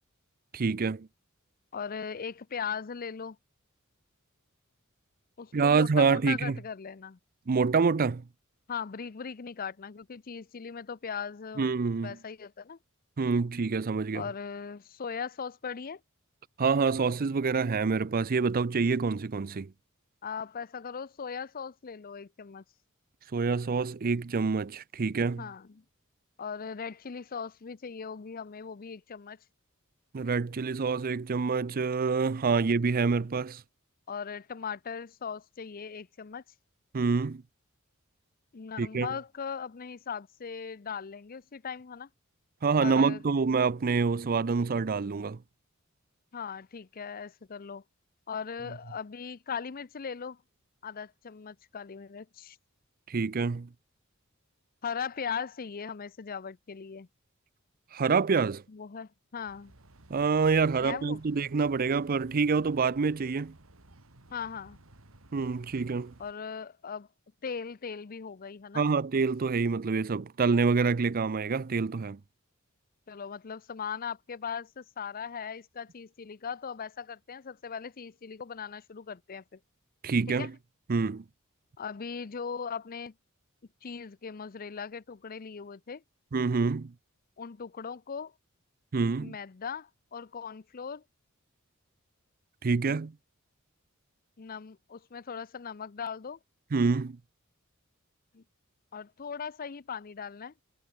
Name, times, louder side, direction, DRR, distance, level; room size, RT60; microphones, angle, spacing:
voice 1, 0.5-1.1 5.5-6.6 7.5-8.2 11.6-12.2 13.2-14.2 16.6-19.7 23.3-25.4 30.1-33.6 36.9-37.4 38.8-39.1 42.6-45.4 53.1-53.7 57.9-58.6 60.1-63.5 65.3-66.1 68.7-72.2 80.0-80.5 80.9-81.2 86.3-86.9 88.9-89.4 92.6-93.1 96.7-97.2, right 4 dB, 45° right, 0.5 m, -27 dB
voice 2, 1.7-3.4 5.4-7.2 8.7-11.7 12.0-12.8 14.1-16.0 20.2-22.6 25.4-25.8 26.4-29.4 34.1-36.4 38.5-42.1 42.8-43.2 46.3-47.8 48.3-50.4 50.8-52.6 54.8-57.1 58.7-59.7 60.8-61.2 64.3-64.8 66.2-67.1 67.4-68.8 73.1-79.6 80.3-80.5 81.8-83.1 83.8-86.0 87.4-88.3 89.2-91.0 94.4-96.4 98.3-98.4 98.9-100.5, left 6 dB, 45° left, 0.6 m, -39 dB
sound 1, 59.4-66.3, right 1 dB, 75° right, 2.5 m, -56 dB
head